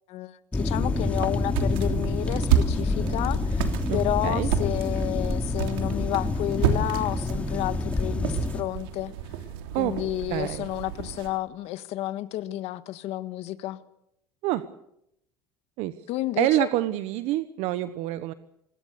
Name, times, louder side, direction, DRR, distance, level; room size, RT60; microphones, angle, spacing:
voice 1, 0.1-9.1 9.8-13.8 16.1-16.7, left 14 dB, 60° left, 12 dB, 1.7 m, -31 dB
sound 1, 0.5-8.6, left 2 dB, 10° left, 2.7 m, -27 dB
sound 2, 0.8-11.4, right 9 dB, 85° right, 3.2 m, -31 dB
voice 2, 3.9-4.5 9.7-9.9 10.3-10.7 14.4-14.6 15.8-15.9 16.4-18.3, right 15 dB, 65° right, 12 dB, 1.1 m, -27 dB
27.0 x 21.5 x 6.9 m, 0.80 s
supercardioid pair, 115°, 12 cm